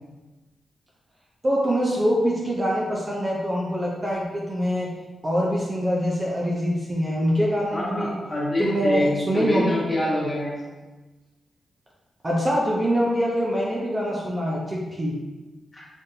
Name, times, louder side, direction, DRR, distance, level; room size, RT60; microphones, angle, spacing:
voice 1, 1.4-4.9 5.2-8.2 8.6-9.8 12.2-15.2, equal, 25° right, -4 dB, 0.6 m, -24 dB
voice 2, 7.7-10.5 15.7-15.8, left 1 dB, 25° left, -7 dB, 1.5 m, -26 dB
5.1 x 2.5 x 2.8 m, 1.2 s
wide cardioid pair, 110°, 0 cm